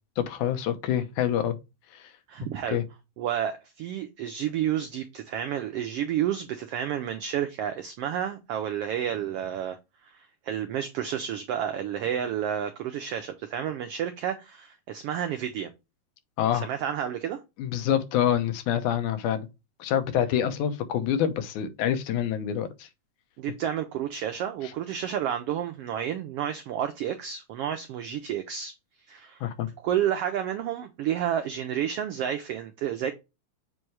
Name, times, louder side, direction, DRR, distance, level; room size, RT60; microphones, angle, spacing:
voice 1, 0.2-1.6 2.7-2.8 16.4-16.7 17.6-19.5 19.8-22.9 29.4-29.7, left 10 dB, 85° left, 2.3 m, -26 dB
voice 2, 2.3-2.8 3.2-9.8 10.0-15.7 16.5-17.4 23.4-28.7 29.1-29.4 29.8-33.1, right 10 dB, 85° right, 1.3 m, -30 dB
7.5 x 2.7 x 4.6 m
omnidirectional pair, 3.4 m